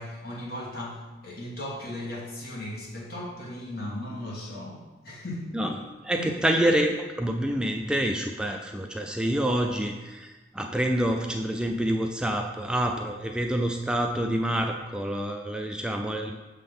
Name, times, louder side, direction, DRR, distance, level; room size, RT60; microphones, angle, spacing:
voice 1, 0.0-5.7 6.1-6.3, left 1 dB, 60° left, -4 dB, 1.7 m, -37 dB
voice 2, 6.0-16.3, right 1 dB, 5° right, 3 dB, 0.3 m, -27 dB
6.6 x 3.7 x 5.4 m, 1.2 s
head